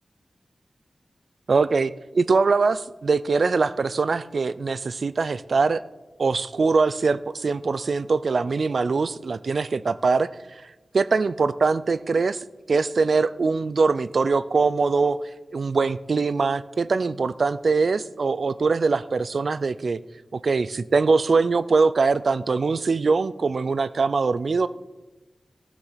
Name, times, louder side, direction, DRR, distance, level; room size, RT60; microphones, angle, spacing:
voice 1, 1.5-5.8 6.2-10.3 10.9-15.2 15.5-20.0 20.3-24.7, right 4 dB, 70° right, 16 dB, 0.4 m, -22 dB
15.5 x 6.2 x 5.7 m, 1.1 s
wide cardioid pair, 85°, 0 cm